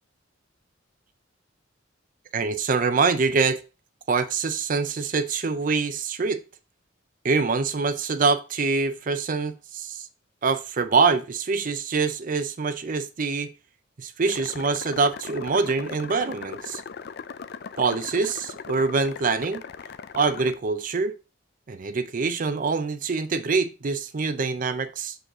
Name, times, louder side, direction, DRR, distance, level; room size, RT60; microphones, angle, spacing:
voice 1, 2.3-3.6 4.1-6.4 7.2-10.1 10.4-13.5 14.0-16.8 17.8-19.6 20.1-21.1 21.7-25.2, right 4 dB, 40° right, 0.5 m, -25 dB
sound 1, 14.3-20.6, left 6 dB, 50° left, 0.4 m, -39 dB
6.3 x 5.1 x 3.6 m
head